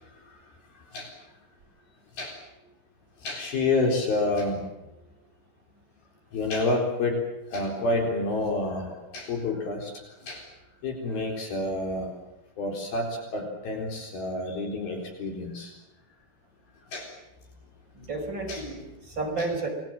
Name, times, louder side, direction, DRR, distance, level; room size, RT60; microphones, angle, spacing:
voice 1, 3.2-4.7 6.3-7.2 7.5-9.9 10.2-10.4 10.8-12.1 12.6-15.7 16.9-17.1 18.5-18.7 19.4-19.5, left 2 dB, 70° left, 1 dB, 5.8 m, -28 dB
voice 2, 18.0-19.7, right 3 dB, 30° right, 1 dB, 5.5 m, -32 dB
28.5 x 21.0 x 7.7 m, 0.95 s
omnidirectional pair, 4.4 m